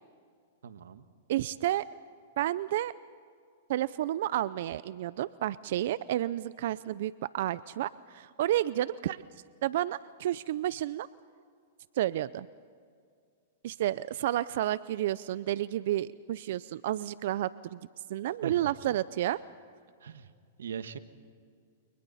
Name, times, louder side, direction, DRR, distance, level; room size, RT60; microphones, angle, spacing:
voice 1, 0.6-1.0 18.4-19.0 20.0-20.3 20.6-21.0, right 7 dB, 85° right, 10 dB, 1.5 m, -40 dB
voice 2, 1.3-1.9 2.4-2.9 3.7-9.2 9.6-11.1 12.0-12.5 13.6-17.8 18.1-19.4, right 13 dB, 65° right, 17 dB, 0.5 m, -31 dB
29.5 x 29.5 x 4.2 m, 2.2 s
hypercardioid pair, 130°, 0 cm